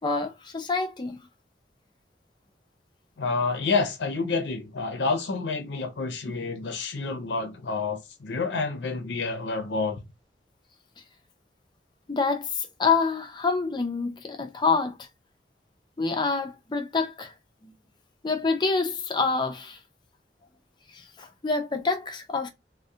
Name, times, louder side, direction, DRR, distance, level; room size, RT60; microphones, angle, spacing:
voice 1, 0.0-1.2 6.3-6.4 12.1-15.1 16.0-17.3 17.6-17.7 18.2-19.8 20.9-22.5, left 4 dB, 25° left, 0.4 m, -27 dB
voice 2, 3.2-10.0, left 4 dB, 80° left, 0.5 m, -28 dB
2.2 x 2.1 x 2.6 m
head